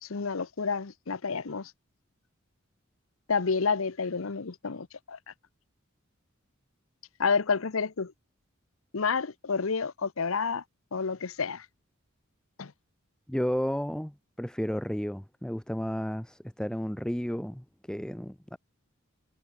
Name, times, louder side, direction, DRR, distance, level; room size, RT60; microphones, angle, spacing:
voice 1, 0.0-1.7 3.3-5.2 7.2-8.1 8.9-10.6 10.9-11.7 12.6-12.7, left 5 dB, 75° left, 0.8 m, -29 dB
voice 2, 13.3-18.6, equal, 5° left, 0.6 m, -32 dB
head